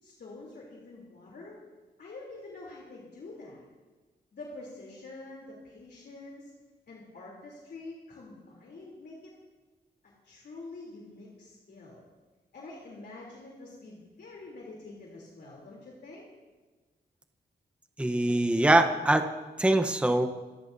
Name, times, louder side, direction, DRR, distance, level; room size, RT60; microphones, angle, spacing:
voice 1, 0.0-1.6 2.0-3.6 4.3-6.5 6.9-9.3 10.2-12.0 12.5-16.3, left 2 dB, 70° left, -4 dB, 3.3 m, -46 dB
voice 2, 18.0-19.3 19.6-20.3, right 1 dB, 5° right, 6 dB, 0.9 m, -23 dB
26.5 x 14.0 x 2.7 m, 1.3 s
cardioid pair, 90°, 18 cm